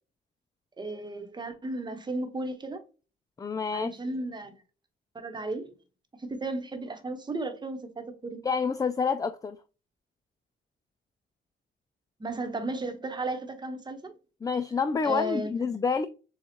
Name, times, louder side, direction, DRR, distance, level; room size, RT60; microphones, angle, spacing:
voice 1, 0.8-2.8 3.7-4.5 5.1-5.7 6.2-8.4 12.2-14.1 15.0-15.5, right 2 dB, 20° right, 1.1 m, -34 dB
voice 2, 3.4-4.0 8.4-9.6 14.4-16.1, left 5 dB, 20° left, 0.3 m, -28 dB
6.9 x 2.4 x 2.9 m
cardioid pair, 90°, 20 cm